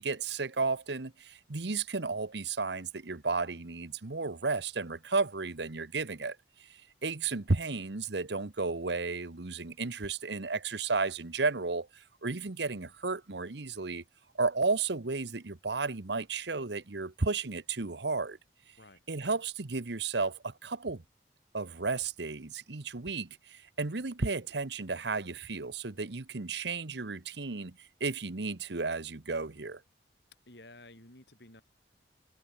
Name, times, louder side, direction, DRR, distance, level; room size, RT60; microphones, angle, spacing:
voice 1, 0.0-14.0 14.4-18.4 19.1-21.0 21.5-29.8, right 4 dB, 70° right, 1.1 m, -33 dB
voice 2, 30.5-31.6, left 2 dB, 70° left, 7.1 m, -53 dB
head